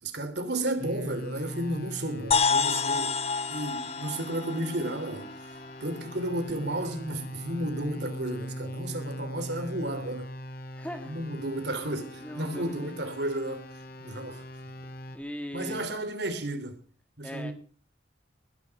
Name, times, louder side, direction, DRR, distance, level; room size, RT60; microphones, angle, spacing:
voice 1, 0.0-3.2 3.5-5.3 5.8-10.3 11.1-13.7 14.0-14.4 15.5-16.8 17.2-17.5, right 1 dB, 60° right, 3.2 m, -33 dB
sound 1, 0.8-15.2, equal, 50° left, 3.1 m, -41 dB
sound 2, 2.3-6.1, left 5 dB, 30° left, 0.8 m, -29 dB
voice 2, 10.8-11.2 12.2-12.9 15.1-15.9 17.2-17.5, equal, 5° left, 2.1 m, -39 dB
20.5 x 10.0 x 5.9 m
head